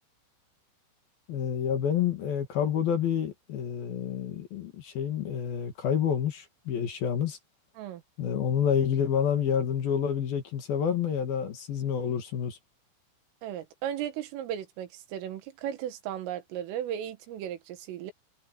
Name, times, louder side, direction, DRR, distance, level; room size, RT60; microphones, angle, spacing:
voice 1, 1.3-7.4 8.2-12.6, left 8 dB, 55° left, 3.4 m, -28 dB
voice 2, 13.4-18.1, right 10 dB, 85° right, 4.3 m, -36 dB
omnidirectional pair, 5.6 m